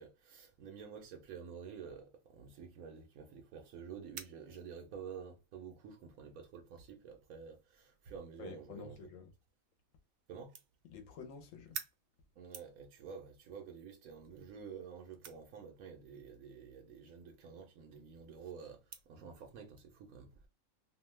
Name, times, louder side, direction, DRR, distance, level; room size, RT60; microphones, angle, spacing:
voice 1, 0.0-9.0 10.3-10.6 12.4-20.5, right 6 dB, 90° right, 1.1 m, -50 dB
sound 1, 2.1-19.8, right 7 dB, 65° right, 0.6 m, -56 dB
voice 2, 8.4-9.3 10.9-11.8, left 5 dB, 75° left, 1.0 m, -49 dB
2.7 x 2.1 x 3.1 m
omnidirectional pair, 1.4 m